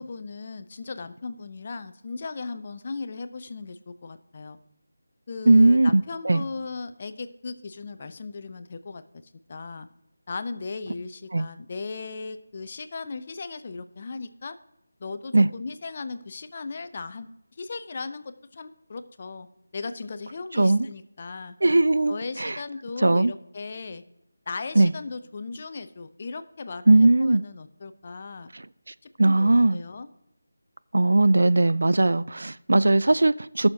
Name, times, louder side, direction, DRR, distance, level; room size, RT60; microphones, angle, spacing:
voice 1, 0.0-4.6 5.3-9.0 9.5-9.9 10.3-14.6 15.0-17.3 17.5-19.5 19.7-21.6 22.1-24.0 24.5-28.5 29.0-30.1, left 4 dB, 35° left, 0.6 m, -37 dB
voice 2, 5.5-6.4 11.3-11.5 15.3-15.5 20.5-20.9 21.6-22.6 23.0-23.3 24.8-24.9 26.9-27.4 29.2-29.8 30.9-33.7, right 2 dB, 65° right, 0.3 m, -19 dB
19.0 x 6.5 x 2.8 m
figure-of-eight pair, 160°, 0 cm